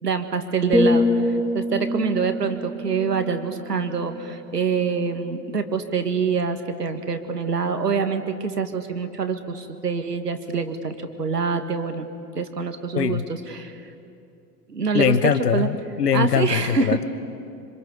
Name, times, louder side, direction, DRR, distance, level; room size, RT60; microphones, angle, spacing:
voice 1, 0.0-12.1 12.3-13.9 14.7-15.7 16.1-17.1, right 5 dB, 80° right, 8 dB, 1.8 m, -25 dB
sound 1, 0.7-4.7 5.1-5.4, left 1 dB, 5° left, 0.9 m, -25 dB
voice 2, 14.9-17.0, left 7 dB, 80° left, 14 dB, 0.8 m, -21 dB
26.5 x 26.0 x 6.8 m, 2.6 s
figure-of-eight pair, 90°, 47 cm